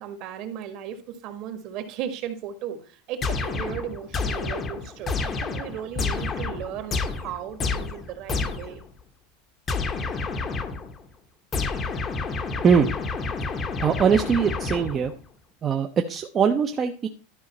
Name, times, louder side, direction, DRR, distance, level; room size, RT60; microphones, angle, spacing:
voice 1, 0.0-8.8, right 9 dB, 45° right, 8 dB, 1.5 m, -36 dB
sound 1, 3.2-8.8 9.7-11.0 11.5-15.2, left 4 dB, 20° left, 0.8 m, -29 dB
voice 2, 13.8-15.1 15.6-17.1, right 7 dB, 20° right, 4 dB, 0.6 m, -21 dB
12.0 x 5.0 x 4.2 m, 0.37 s
supercardioid pair, 165°, 0 cm